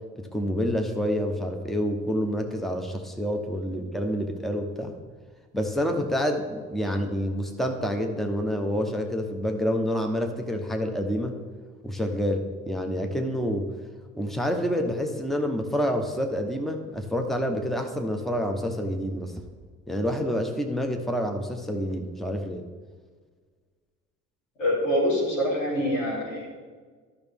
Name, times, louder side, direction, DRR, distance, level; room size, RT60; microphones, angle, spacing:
voice 1, 0.2-4.9 5.5-11.4 11.8-13.7 14.2-19.4 19.9-22.6, equal, ahead, 4 dB, 1.1 m, -28 dB
voice 2, 24.6-26.5, equal, 90° left, -7 dB, 3.0 m, -25 dB
12.5 x 5.7 x 3.6 m, 1.5 s
hypercardioid pair, 55°, 37 cm